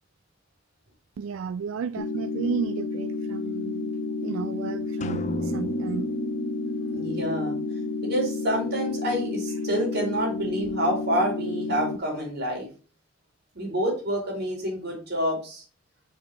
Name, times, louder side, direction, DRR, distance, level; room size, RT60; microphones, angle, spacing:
voice 1, 1.2-3.9 4.2-6.1, right 6 dB, 80° right, 0.3 m, -33 dB
sound 1, 2.0-12.0, left 3 dB, 85° left, 0.9 m, -31 dB
sound 2, 5.0-8.8, right 1 dB, 35° left, 0.5 m, -35 dB
voice 2, 6.9-7.6 8.0-12.7 13.5-15.6, equal, 55° right, 3.2 m, -28 dB
5.0 x 4.7 x 4.4 m
head